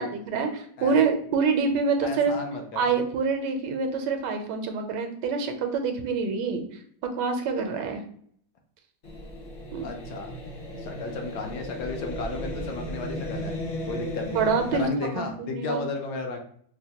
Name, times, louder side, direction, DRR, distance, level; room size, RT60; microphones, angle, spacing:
voice 1, 0.0-2.4 2.8-8.0 9.7-9.9 14.3-15.8, right 5 dB, 85° right, 5 dB, 1.2 m, -26 dB
voice 2, 2.0-2.8 9.8-10.3 10.8-13.5 13.9-16.4, left 2 dB, 75° left, 4 dB, 1.2 m, -33 dB
sound 1, 9.0-14.9, left 1 dB, 40° left, 0.8 m, -35 dB
4.6 x 2.1 x 2.8 m, 0.62 s
omnidirectional pair, 1.8 m